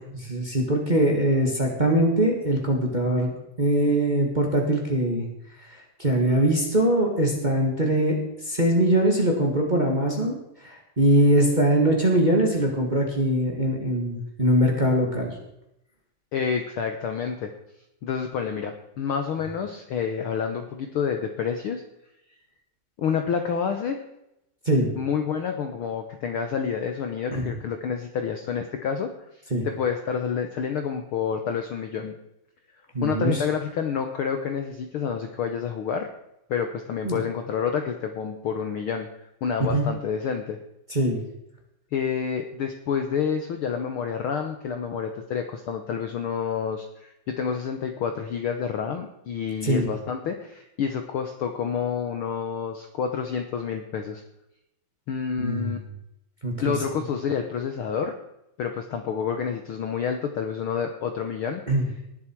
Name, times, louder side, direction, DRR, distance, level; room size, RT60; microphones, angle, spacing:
voice 1, 0.0-5.3 6.0-8.2 8.4-10.4 10.6-15.3 24.6-24.9 27.3-27.4 29.5-29.6 32.9-33.4 37.0-37.2 39.7-39.8 40.9-41.2 49.6-49.9 55.4-55.7 56.4-56.7 61.7-61.9, right 1 dB, 20° right, 0 dB, 1.6 m, -22 dB
voice 2, 16.3-17.5 18.0-21.8 23.0-24.0 24.9-29.1 29.6-32.1 33.0-36.1 36.5-39.1 39.4-40.6 41.9-54.2 55.1-55.8 56.6-58.1 58.6-61.6, left 7 dB, 65° left, 6 dB, 1.4 m, -28 dB
19.0 x 7.6 x 4.6 m, 0.86 s
omnidirectional pair, 3.4 m